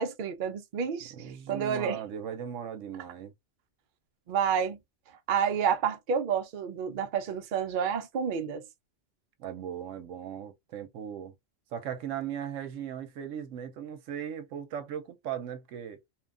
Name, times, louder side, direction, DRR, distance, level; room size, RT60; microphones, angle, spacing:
voice 1, 0.0-2.0 4.3-4.8 5.3-8.6, right 7 dB, 55° right, 0.5 m, -29 dB
voice 2, 1.1-3.3 9.4-11.3 11.7-16.0, right 9 dB, 80° right, 1.0 m, -38 dB
2.9 x 2.3 x 2.3 m
omnidirectional pair, 1.3 m